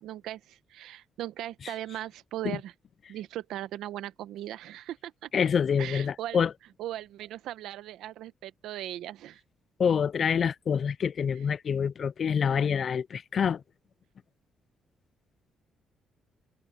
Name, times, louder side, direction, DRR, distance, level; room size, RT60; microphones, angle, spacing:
voice 1, 0.0-2.7 3.1-5.3 5.8-6.4 6.8-9.4, right 13 dB, 85° right, 1.0 m, -38 dB
voice 2, 5.3-6.5 9.8-13.6, left 7 dB, 50° left, 0.4 m, -26 dB
cardioid pair, 90°, 0 cm